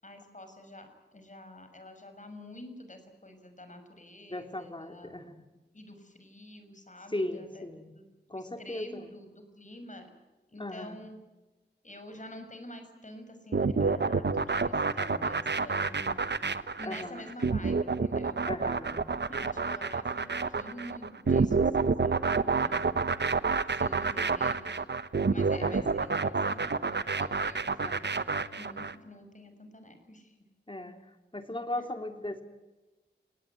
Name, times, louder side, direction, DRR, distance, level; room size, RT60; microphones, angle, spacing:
voice 1, 0.0-5.3 5.7-8.0 8.3-10.1 10.5-11.2 11.8-16.3 16.8-18.4 19.3-23.1 23.8-24.9 25.3-28.0 28.6-30.3 31.7-31.9, left 1 dB, 45° left, 7 dB, 6.1 m, -48 dB
voice 2, 4.3-5.4 7.1-7.9 8.3-9.1 10.6-11.1 15.0-15.3 16.8-17.2 18.5-19.1 22.5-22.9 25.5-26.0 27.8-28.2 30.7-31.0 31.3-32.4, left 1 dB, 30° left, 7 dB, 3.1 m, -38 dB
sound 1, 13.5-28.9, right 4 dB, 75° right, 1.1 m, -28 dB
29.5 x 18.5 x 9.4 m, 1.2 s
wide cardioid pair, 65°, 18 cm